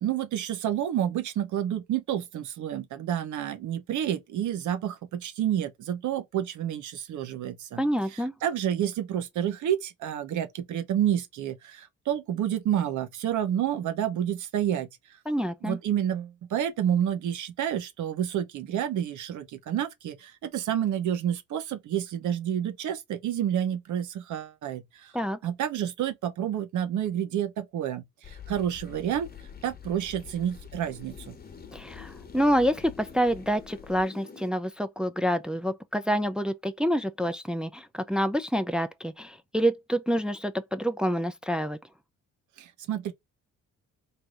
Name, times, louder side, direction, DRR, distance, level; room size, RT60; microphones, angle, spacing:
voice 1, 0.0-7.8 8.1-14.9 15.6-25.1 25.4-29.3 29.6-31.3 42.6-43.1, right 10 dB, 75° right, 1.0 m, -29 dB
voice 2, 7.8-8.3 15.3-15.8 25.1-25.4 31.7-41.8, equal, 5° right, 0.5 m, -27 dB
sound 1, 28.2-34.5, left 7 dB, 30° left, 1.0 m, -46 dB
3.4 x 2.7 x 3.8 m
cardioid pair, 90°, 30 cm